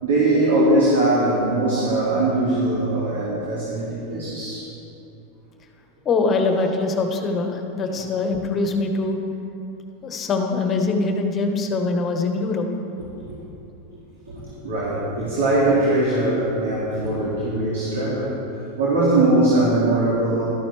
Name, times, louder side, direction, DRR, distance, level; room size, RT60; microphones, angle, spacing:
voice 1, 0.0-4.7 13.2-13.4 14.3-18.4 18.8-20.5, right 2 dB, 90° right, -7 dB, 2.3 m, -21 dB
voice 2, 6.0-9.2 10.0-12.7, left 3 dB, 30° left, 4 dB, 1.3 m, -23 dB
12.5 x 12.0 x 3.4 m, 2.8 s
hypercardioid pair, 110°, 0 cm